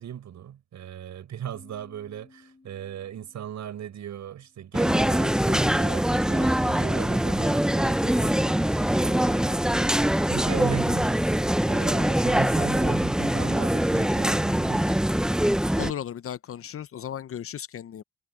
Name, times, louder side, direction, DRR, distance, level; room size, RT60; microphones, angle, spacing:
voice 1, 0.0-9.8 10.3-11.2 11.6-15.0, right 10 dB, 65° right, 6.6 m, -38 dB
sound 1, 1.5-5.1, left 3 dB, 25° left, 6.7 m, -58 dB
sound 2, 4.7-15.9, equal, ahead, 0.8 m, -23 dB
voice 2, 15.8-18.0, left 9 dB, 45° left, 0.7 m, -35 dB
cardioid pair, 90°, 30 cm